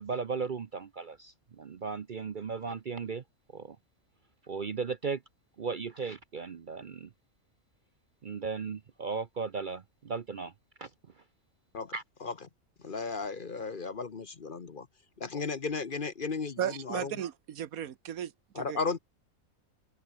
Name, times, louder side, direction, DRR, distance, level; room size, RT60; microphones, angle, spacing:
voice 1, 0.0-3.2 3.5-3.8 4.5-5.2 5.6-7.1 8.2-10.5 10.8-10.9 11.9-12.0, right 5 dB, 45° right, 0.7 m, -36 dB
voice 2, 12.8-14.9 15.2-16.6 16.9-17.1 18.6-19.0, left 4 dB, 40° left, 1.1 m, -34 dB
voice 3, 16.6-18.8, right 10 dB, 80° right, 1.4 m, -35 dB
open air
omnidirectional pair, 1.5 m